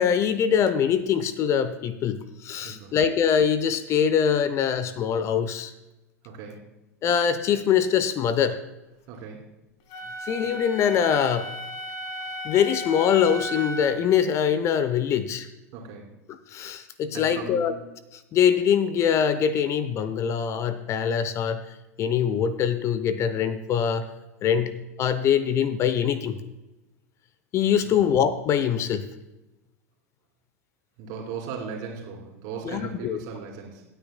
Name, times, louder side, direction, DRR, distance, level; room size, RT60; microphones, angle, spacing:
voice 1, 0.0-5.7 7.0-8.6 10.2-11.5 12.4-15.5 16.5-17.7 18.3-21.6 22.0-24.1 24.4-26.4 27.5-29.0 32.7-33.2, left 8 dB, 35° left, 13 dB, 0.7 m, -23 dB
voice 2, 2.6-3.0 6.2-6.7 9.1-9.5 15.7-16.1 17.1-17.7 24.4-24.6 27.8-28.0 31.0-33.8, right 5 dB, 45° right, 0 dB, 3.0 m, -37 dB
Wind instrument woodwind instrument, 9.9-14.1, left 1 dB, 50° left, 1.3 m, -35 dB
26.0 x 9.0 x 2.2 m, 0.99 s
figure-of-eight pair, 85°, 9 cm